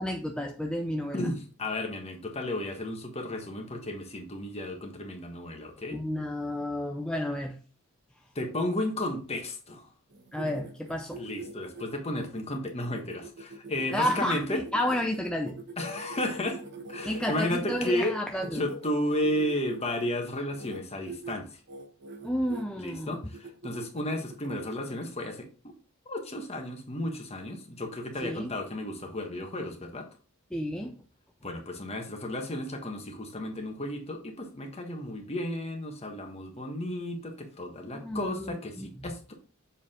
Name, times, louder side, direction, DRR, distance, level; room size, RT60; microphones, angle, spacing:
voice 1, 0.0-1.3 5.9-7.6 10.3-11.2 13.9-15.6 17.0-18.7 22.2-23.2 28.2-28.6 30.5-31.0 37.9-38.9, left 1 dB, 5° left, 0.5 m, -31 dB
voice 2, 1.1-6.0 8.3-9.9 11.2-14.6 15.8-16.6 16.9-18.2 18.5-21.5 22.8-25.5 26.1-30.1 31.4-39.3, left 1 dB, 30° left, 1.3 m, -33 dB
sound 1, 10.1-17.9 18.4-20.1 20.5-20.8 21.0-21.3 21.7-22.6 23.1-24.8, right 2 dB, 55° right, 1.1 m, -43 dB
7.2 x 4.5 x 3.6 m
head